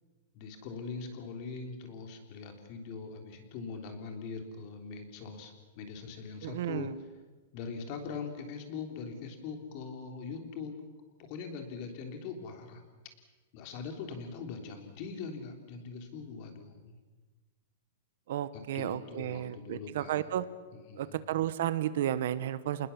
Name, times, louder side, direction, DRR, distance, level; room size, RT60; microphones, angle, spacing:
voice 1, 0.3-6.9 7.5-10.8 11.2-12.8 13.5-16.9 18.5-20.3 20.9-21.2, left 5 dB, 40° left, 5 dB, 3.5 m, -42 dB
voice 2, 6.4-6.9 18.3-20.5 21.0-22.9, right 11 dB, 60° right, 15 dB, 1.1 m, -33 dB
27.5 x 20.0 x 7.2 m, 1.3 s
supercardioid pair, 165°, 0 cm